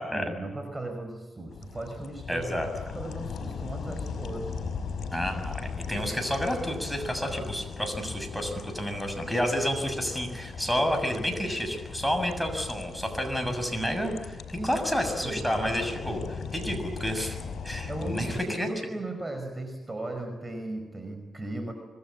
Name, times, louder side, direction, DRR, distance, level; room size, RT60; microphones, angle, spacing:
voice 1, 0.0-2.6 2.9-4.5 14.5-14.8 15.2-15.6 17.9-21.7, right 2 dB, 25° right, 6 dB, 5.3 m, -37 dB
sound 1, 1.5-18.4, left 5 dB, 70° left, 5.6 m, -38 dB
voice 2, 2.3-2.7 5.1-17.4 17.6-18.7, equal, ahead, 6 dB, 6.9 m, -30 dB
26.5 x 21.0 x 8.7 m, 1.2 s
cardioid pair, 80°, 0 cm